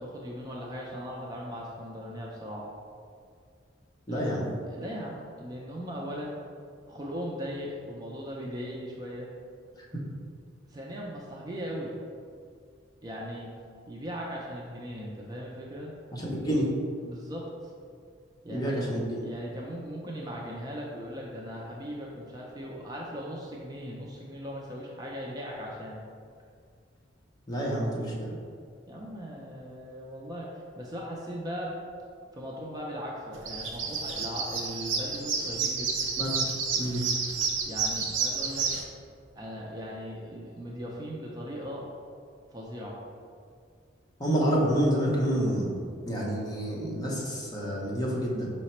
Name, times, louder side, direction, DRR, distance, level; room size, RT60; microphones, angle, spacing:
voice 1, 0.0-2.7 4.1-6.4 6.9-9.3 10.7-11.9 13.0-13.5 13.9-16.0 17.0-17.4 18.4-26.0 27.6-27.7 28.0-28.4 28.9-30.5 30.8-31.7 32.3-35.9 37.7-38.7 39.3-41.9 42.5-43.0, equal, 20° right, -3 dB, 0.4 m, -38 dB
voice 2, 4.1-4.4 16.1-16.7 18.5-19.2 27.5-28.3 36.2-36.3 36.8-37.0 44.2-45.7 46.1-48.5, equal, 20° left, -4 dB, 0.7 m, -28 dB
sound 1, 33.3-38.8, right 5 dB, 75° right, 0.5 m, -30 dB
4.8 x 2.1 x 4.2 m, 2.2 s
head